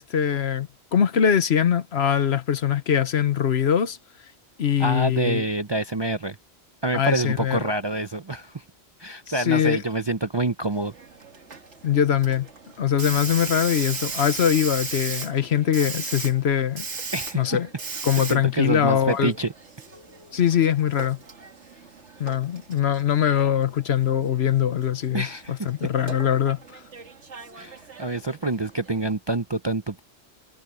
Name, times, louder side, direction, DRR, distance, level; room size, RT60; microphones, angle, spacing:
voice 1, 0.0-4.0 4.6-5.4 6.9-7.6 9.4-9.8 11.8-12.5 12.8-16.9 17.3-17.7 18.0-19.3 20.3-21.2 22.2-26.8, left 9 dB, 70° left, 1.2 m, -22 dB
voice 2, 4.8-6.4 6.8-8.6 9.0-10.9 17.1-17.6 18.2-19.5 25.1-25.9 27.6-30.0, right 2 dB, 30° right, 0.5 m, -27 dB
Hiss, 10.7-29.1, right 4 dB, 85° right, 2.1 m, -38 dB
omnidirectional pair, 1.2 m